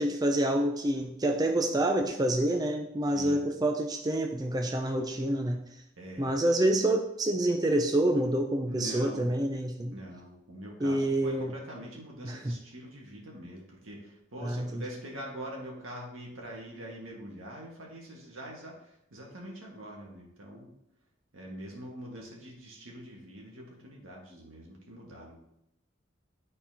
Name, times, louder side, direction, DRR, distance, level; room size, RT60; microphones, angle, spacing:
voice 1, 0.0-5.6 6.2-9.9 10.8-11.5 12.2-12.6 14.4-14.8, right 1 dB, 20° right, 3 dB, 0.4 m, -27 dB
voice 2, 6.0-6.3 8.7-9.3 9.9-20.7 21.3-25.4, equal, 85° right, -2 dB, 1.7 m, -44 dB
11.0 x 4.3 x 2.8 m, 0.82 s
head